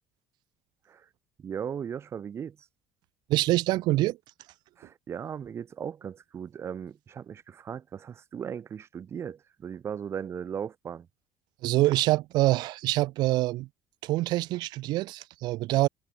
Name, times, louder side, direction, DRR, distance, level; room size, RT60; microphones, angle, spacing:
voice 1, 1.4-2.6 4.8-11.1, right 8 dB, 35° right, 7.3 m, -37 dB
voice 2, 3.3-4.2 11.6-13.7 14.0-15.9, right 18 dB, 65° right, 7.9 m, -25 dB
cardioid pair, 135°, 8 cm